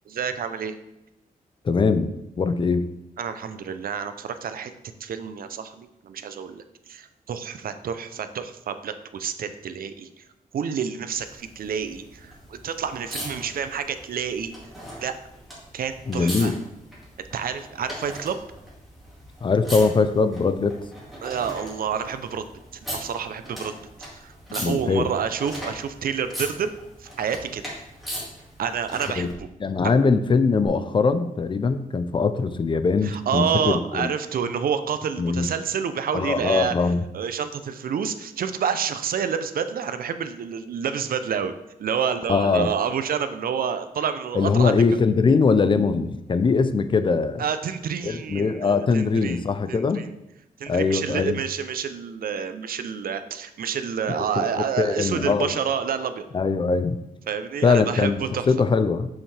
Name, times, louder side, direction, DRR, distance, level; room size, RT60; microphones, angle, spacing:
voice 1, 0.1-0.8 3.2-4.7 5.0-10.3 10.5-14.6 15.0-15.1 15.7-16.5 17.3-18.4 21.2-22.4 22.9-23.9 24.1-26.7 27.0-27.6 28.6-29.5 29.8-30.0 33.0-36.7 37.1-41.5 41.8-44.7 45.0-45.1 47.4-50.1 50.6-56.3 57.3-58.5, right 7 dB, 75° right, 10 dB, 0.5 m, -29 dB
voice 2, 1.6-2.1 2.4-2.9 16.1-16.6 19.4-20.8 24.6-25.1 29.2-29.3 29.6-34.1 35.2-35.5 36.1-37.0 42.3-42.7 44.4-47.4 48.0-50.1 50.7-51.4 54.4-54.5 54.8-55.5 56.3-57.0 57.6-59.1, left 4 dB, 35° left, 11 dB, 0.4 m, -21 dB
sound 1, 11.2-29.3 30.6-30.7, equal, ahead, 2.1 m, -39 dB
7.1 x 5.6 x 3.3 m, 0.88 s
wide cardioid pair, 140°, 15 cm